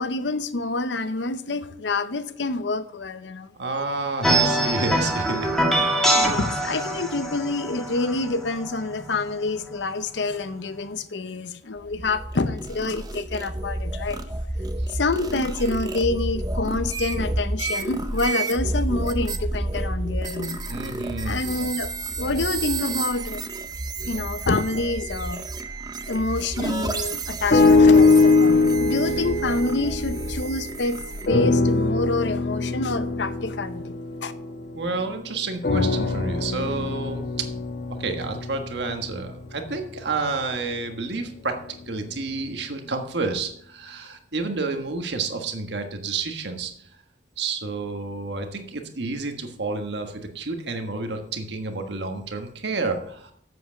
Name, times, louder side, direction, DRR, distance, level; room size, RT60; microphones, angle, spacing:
voice 1, 0.0-3.5 6.1-14.2 14.9-20.6 21.2-23.5 24.0-25.4 26.1-34.0 34.2-34.3, left 3 dB, 75° left, 0.8 m, -27 dB
voice 2, 3.6-5.5 20.7-21.4 34.7-37.3 38.0-41.6 41.9-46.7 47.4-53.3, right 3 dB, 70° right, 1.4 m, -30 dB
sound 1, 4.2-9.7, right 1 dB, ahead, 1.7 m, -24 dB
sound 2, 11.8-31.3, right 2 dB, 20° right, 0.7 m, -30 dB
sound 3, 27.5-30.9 31.3-35.0 35.6-39.8 40.5-40.6, left 3 dB, 55° left, 1.0 m, -21 dB
7.9 x 7.9 x 6.2 m
head